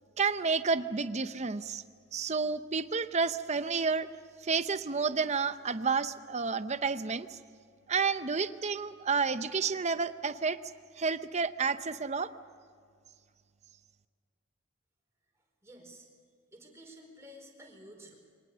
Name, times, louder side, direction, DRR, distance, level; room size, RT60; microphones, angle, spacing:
voice 1, 0.2-1.8 2.1-4.1 4.4-7.4 7.9-10.6 11.0-12.3, right 5 dB, 35° right, 12 dB, 0.7 m, -30 dB
voice 2, 15.6-16.1 16.5-18.2, equal, 15° right, 0 dB, 4.5 m, -51 dB
24.5 x 19.0 x 6.9 m, 2.2 s
head